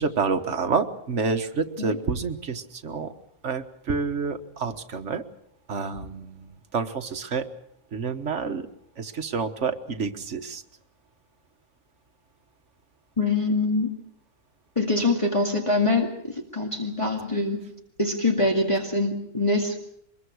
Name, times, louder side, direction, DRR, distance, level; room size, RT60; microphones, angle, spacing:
voice 1, 0.0-3.1 3.4-5.2 5.7-7.5 7.9-8.7 9.0-10.6, right 5 dB, 60° right, 7 dB, 1.6 m, -28 dB
voice 2, 13.2-13.9 14.8-17.6 18.0-19.8, left 2 dB, 25° left, 1 dB, 2.2 m, -24 dB
24.0 x 22.0 x 6.3 m, 0.73 s
omnidirectional pair, 1.4 m